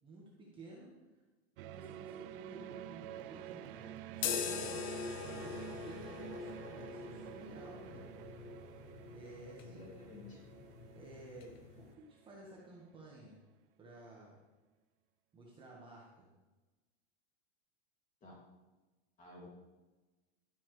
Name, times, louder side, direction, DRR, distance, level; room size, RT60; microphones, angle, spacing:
voice 1, 0.0-0.9 1.6-8.1 9.1-9.9 10.9-13.4 13.8-14.4 15.3-16.3, right 2 dB, 15° right, -4 dB, 1.4 m, -54 dB
sound 1, 1.6-12.9, right 12 dB, 50° right, 0.5 m, -50 dB
sound 2, 4.1-11.9, left 7 dB, 55° left, 0.9 m, -43 dB
voice 2, 9.6-10.4 18.2-18.4 19.2-19.5, left 2 dB, 20° left, -2 dB, 2.4 m, -53 dB
12.0 x 8.4 x 3.2 m, 1.2 s
supercardioid pair, 150°, 34 cm